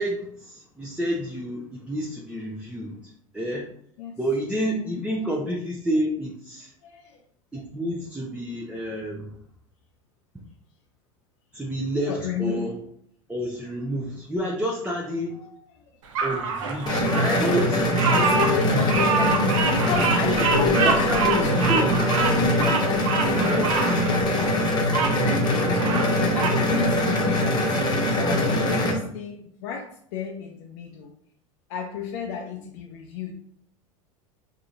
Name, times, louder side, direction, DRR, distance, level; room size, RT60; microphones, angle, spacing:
voice 1, 0.0-3.7 4.2-6.7 7.5-9.3 11.5-12.7 13.3-15.4 16.2-18.4 18.7-18.9 20.5-22.0 23.5-23.7, right 1 dB, 5° right, -3 dB, 0.7 m, -29 dB
voice 2, 6.8-7.2 12.1-12.7 15.3-15.6 18.1-21.9 22.2-29.9 30.1-31.1 31.7-33.3, left 8 dB, 55° left, 0 dB, 0.6 m, -31 dB
Bird vocalization bird call bird song, 16.1-25.1 25.6-26.6, right 5 dB, 65° right, 0.6 m, -26 dB
sound 1, 16.9-28.9, left 1 dB, 25° left, 1.1 m, -23 dB
4.8 x 2.8 x 2.5 m, 0.66 s
figure-of-eight pair, 80°, 18 cm